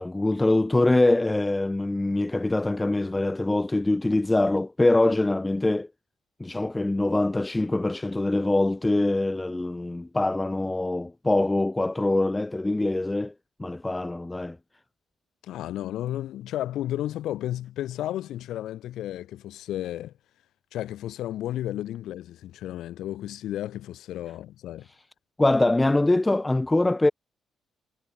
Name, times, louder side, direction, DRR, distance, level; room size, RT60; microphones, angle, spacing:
voice 1, 0.0-5.9 6.4-13.3 13.6-14.6 25.4-27.1, left 2 dB, 15° left, 1.6 m, -23 dB
voice 2, 15.4-20.1 20.7-24.9, left 13 dB, 80° left, 2.2 m, -33 dB
cardioid pair, 90°, 0 cm